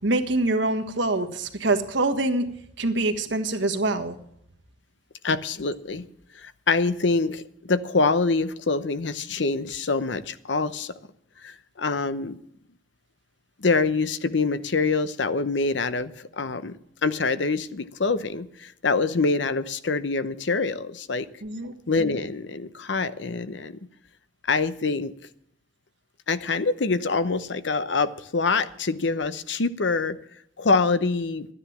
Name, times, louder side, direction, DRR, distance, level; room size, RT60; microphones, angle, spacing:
voice 1, 0.0-2.4 2.8-4.2 21.4-21.7, right 2 dB, 90° right, 7 dB, 1.5 m, -25 dB
voice 2, 5.2-6.0 6.3-10.9 11.4-12.4 13.6-21.3 21.9-23.8 24.5-25.1 26.3-30.2 30.6-31.5, left 4 dB, 75° left, 13 dB, 0.8 m, -25 dB
12.5 x 10.0 x 7.2 m, 0.72 s
head